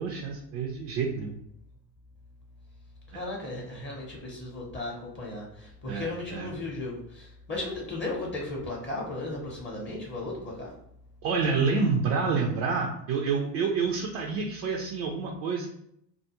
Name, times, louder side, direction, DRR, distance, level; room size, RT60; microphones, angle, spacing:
voice 1, 0.0-1.3 3.1-3.2 5.9-6.5 11.2-15.7, right 5 dB, 40° right, 0 dB, 0.4 m, -28 dB
voice 2, 3.1-10.7, left 2 dB, 25° left, -3 dB, 0.7 m, -36 dB
2.3 x 2.0 x 2.9 m, 0.73 s
hypercardioid pair, 75°, 50 cm